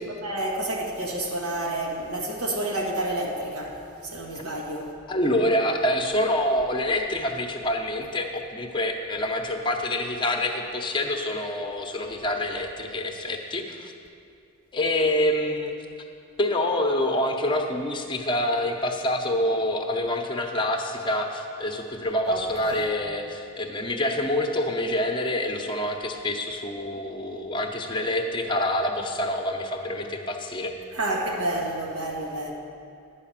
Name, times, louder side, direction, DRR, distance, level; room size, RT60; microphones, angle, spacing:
voice 1, 0.2-4.9 22.3-22.9 30.9-32.5, right 1 dB, 90° right, -2 dB, 1.4 m, -29 dB
voice 2, 5.1-13.9 14.7-15.7 16.4-30.7, left 1 dB, 25° left, 3 dB, 0.8 m, -26 dB
11.0 x 5.0 x 7.3 m, 2.5 s
head